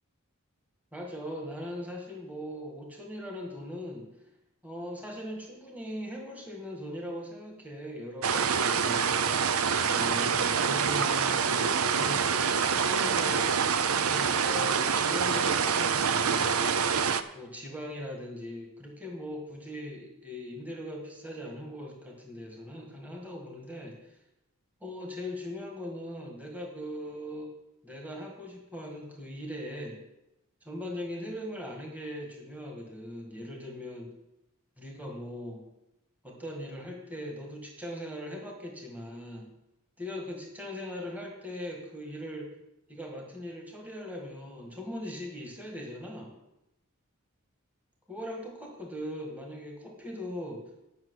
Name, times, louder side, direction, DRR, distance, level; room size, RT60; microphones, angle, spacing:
voice 1, 0.9-4.1 4.6-9.1 9.7-13.5 14.0-16.9 17.3-24.0 24.8-27.5 27.8-30.0 30.6-34.1 34.8-35.7 36.2-39.5 40.0-42.5 42.9-46.3 48.1-50.6, left 1 dB, 5° right, 0 dB, 1.8 m, -40 dB
sound 1, 8.2-17.2, right 6 dB, 80° right, 0.6 m, -26 dB
10.5 x 6.2 x 8.0 m, 0.91 s
head